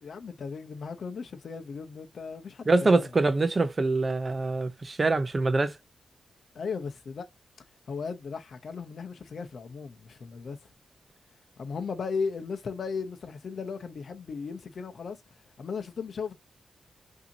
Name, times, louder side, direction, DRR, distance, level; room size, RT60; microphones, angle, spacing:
voice 1, 0.0-3.1 6.5-7.3 7.9-10.7 11.6-15.2 15.6-16.3, left 5 dB, 60° left, 0.7 m, -36 dB
voice 2, 2.7-5.8, right 3 dB, 30° right, 0.5 m, -24 dB
5.6 x 2.8 x 2.6 m
wide cardioid pair, 150°, 0 cm